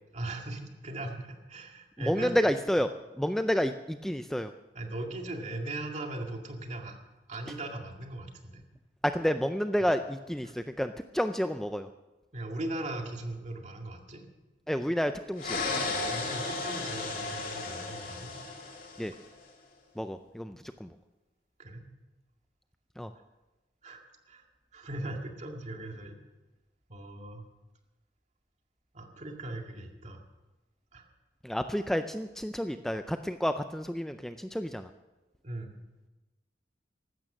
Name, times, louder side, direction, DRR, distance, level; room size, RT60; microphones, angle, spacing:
voice 1, 0.1-2.3 4.7-7.0 7.3-8.6 10.4-10.5 12.3-14.2 16.1-18.3 21.6-21.9 23.8-26.2 26.9-27.4 28.9-30.2 30.9-31.1 35.4-35.8, right 2 dB, 40° right, 3 dB, 2.1 m, -39 dB
voice 2, 2.0-4.5 9.0-11.9 14.7-15.6 19.0-19.1 20.0-20.9 23.0-23.1 31.4-34.9, equal, ahead, 9 dB, 0.4 m, -30 dB
sound 1, 15.4-19.3, left 3 dB, 55° left, 2.6 m, -34 dB
15.5 x 12.5 x 6.2 m, 1.1 s
head